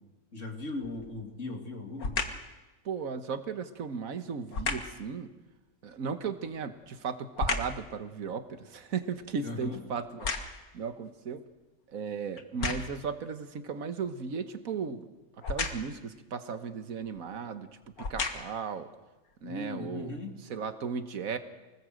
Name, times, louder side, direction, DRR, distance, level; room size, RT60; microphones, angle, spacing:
voice 1, 0.3-2.2 9.4-9.8 19.4-20.3, left 2 dB, 60° left, 2 dB, 3.2 m, -38 dB
sound 1, 0.8-1.2 2.0-2.5 4.5-5.0 6.4-7.9 8.3-10.8 11.5-11.6 12.4-13.1 15.4-16.0 17.0-17.2 17.8-18.7 19.3-19.4, left 4 dB, 90° left, 2.1 m, -34 dB
voice 2, 2.9-5.3 5.8-10.3 10.7-11.4 11.9-15.1 15.5-17.7 18.0-18.9 19.4-20.2 20.5-21.4, right 6 dB, 75° right, 9 dB, 1.8 m, -36 dB
26.5 x 19.5 x 7.9 m, 1.1 s
omnidirectional pair, 1.5 m